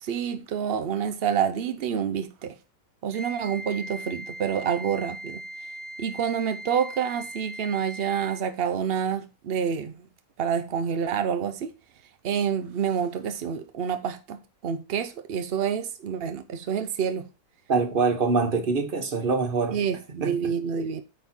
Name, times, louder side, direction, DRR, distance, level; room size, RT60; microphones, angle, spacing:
voice 1, 0.0-2.5 3.0-5.4 6.0-9.9 10.4-11.7 12.2-17.3 19.7-21.0, right 7 dB, 80° right, 0.5 m, -28 dB
Wind instrument woodwind instrument, 3.1-8.5, right 1 dB, 85° left, 2.0 m, -39 dB
voice 2, 17.7-19.8 20.2-20.3, right 4 dB, 35° right, 1.1 m, -24 dB
8.9 x 4.2 x 4.3 m
omnidirectional pair, 1.8 m